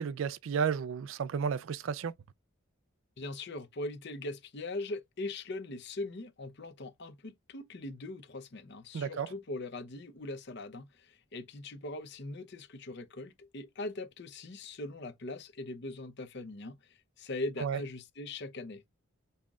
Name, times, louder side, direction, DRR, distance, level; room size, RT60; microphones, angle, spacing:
voice 1, 0.0-2.1 8.9-9.3 17.6-17.8, right 6 dB, 65° right, 0.3 m, -32 dB
voice 2, 3.2-18.8, left 2 dB, 50° left, 0.6 m, -41 dB
5.5 x 3.6 x 2.4 m
head